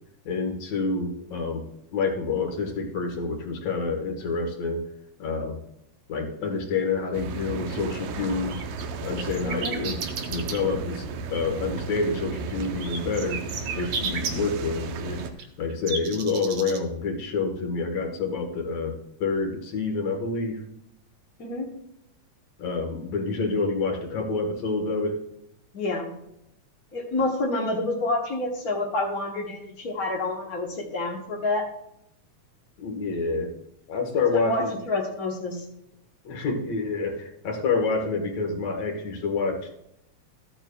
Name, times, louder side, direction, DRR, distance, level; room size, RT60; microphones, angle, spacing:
voice 1, 0.3-1.6 1.9-4.8 5.2-5.6 6.1-10.0 10.3-11.1 11.3-13.4 13.8-15.2 15.6-18.9 19.2-20.6 22.6-25.2 32.8-33.5 33.9-34.7 36.2-39.7, left 4 dB, 65° left, 3 dB, 2.6 m, -28 dB
sound 1, 7.1-15.3, right 4 dB, 85° right, 2.3 m, -34 dB
sound 2, 8.1-10.6 12.6-14.3 15.2-16.8, right 5 dB, 60° right, 1.6 m, -33 dB
voice 2, 9.4-9.7 21.4-21.7 25.7-26.0 26.9-31.6 34.3-35.6, left 2 dB, 45° left, -3 dB, 1.2 m, -28 dB
14.0 x 9.0 x 2.3 m, 0.79 s
omnidirectional pair, 3.3 m